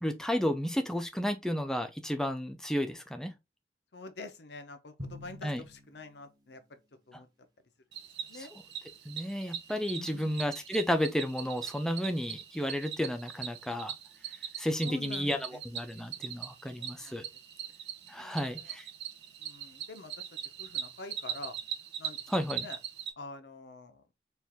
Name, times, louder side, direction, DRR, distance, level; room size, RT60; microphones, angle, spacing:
voice 1, 0.0-3.3 5.4-5.6 8.3-8.5 9.1-13.9 14.6-17.2 18.1-18.9 22.3-22.7, equal, 5° left, 0.4 m, -32 dB
voice 2, 3.9-6.8 7.1-7.3 8.3-8.5 10.0-10.3 14.8-15.6 15.9-16.1 16.8-17.4 18.0-18.6 19.4-20.3 20.6-21.6 22.0-22.2 22.5-22.8 23.2-24.0, left 3 dB, 80° left, 0.8 m, -47 dB
Drum, 5.0-6.7, left 1 dB, 25° right, 0.9 m, -47 dB
Cricket, 7.9-23.1, right 9 dB, 80° right, 0.7 m, -41 dB
4.4 x 2.5 x 3.6 m
head